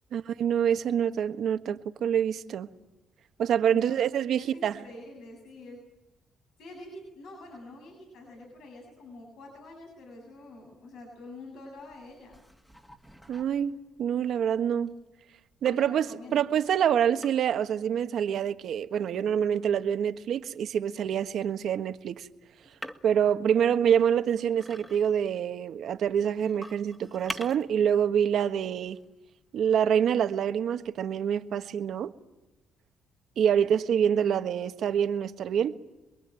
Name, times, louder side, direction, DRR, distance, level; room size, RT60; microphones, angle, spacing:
voice 1, 0.1-2.7 3.4-4.8 13.3-14.9 15.6-16.1 16.3-22.3 23.0-29.0 29.5-32.1 33.4-35.8, right 8 dB, 70° right, 1.4 m, -26 dB
voice 2, 4.3-5.8 6.6-12.4 15.7-16.6, left 2 dB, 80° left, 7.7 m, -46 dB
sound 1, 11.8-15.1 15.7-16.3 17.1-17.7 18.7-20.5 22.6-23.3 23.8-25.4 26.1-27.7 28.1-28.2 28.8-29.1 29.5-29.6, equal, 5° left, 2.0 m, -45 dB
28.0 x 22.0 x 9.2 m
cardioid pair, 90°, 0 cm